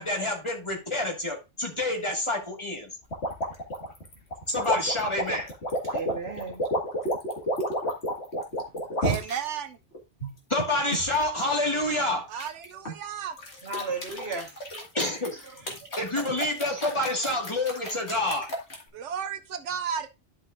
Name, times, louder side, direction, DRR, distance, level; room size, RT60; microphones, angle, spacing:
voice 1, 0.0-2.9 4.5-5.5 10.5-12.3 14.9-15.4 16.0-18.5, left 2 dB, 25° left, 1.9 m, -28 dB
sound 1, 3.1-9.4 9.9-11.2 12.4-13.0 13.4-18.8, equal, 65° left, 2.3 m, -31 dB
voice 2, 5.8-6.7 13.6-14.7 15.5-16.0, right 3 dB, 60° right, 1.7 m, -35 dB
voice 3, 9.0-9.8 12.3-13.4 18.9-20.1, right 8 dB, 75° right, 1.0 m, -33 dB
11.5 x 5.7 x 2.5 m
omnidirectional pair, 1.2 m